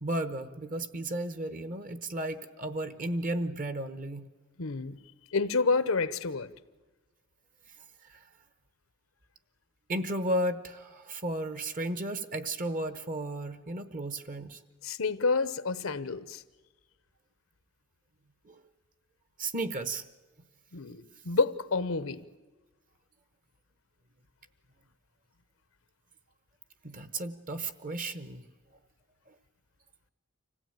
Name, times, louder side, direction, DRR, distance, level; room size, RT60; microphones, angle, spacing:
voice 1, 0.0-4.2 8.1-8.2 9.9-14.6 18.4-18.6 19.4-20.0 26.8-28.4, right 1 dB, 40° right, 12 dB, 1.0 m, -34 dB
voice 2, 4.6-5.0 5.3-6.5 14.8-16.4 20.7-22.2, left 4 dB, 90° left, 14 dB, 1.0 m, -29 dB
25.5 x 16.0 x 9.0 m, 1.2 s
head